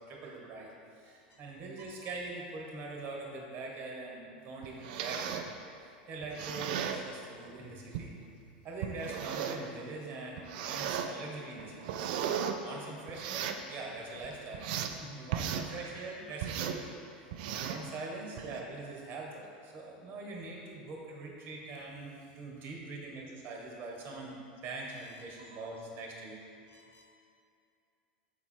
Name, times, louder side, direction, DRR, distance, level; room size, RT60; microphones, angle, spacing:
voice 1, 0.0-5.5 6.1-8.1 8.6-16.9 17.3-24.4 24.6-26.4, right 3 dB, 40° right, -1 dB, 1.4 m, -43 dB
sound 1, 4.6-5.5 6.2-7.0 7.9-8.1 8.8-9.7 10.4-11.1 11.6-12.6 13.1-13.6 14.2-15.0 15.3-15.7 16.4-16.8 17.3-17.9 18.4-18.6, right 9 dB, 65° right, 0.4 m, -36 dB
voice 2, 26.7-27.0, left 1 dB, 50° left, -2 dB, 1.4 m, -62 dB
6.6 x 4.2 x 4.6 m, 2.5 s
hypercardioid pair, 100°, 5 cm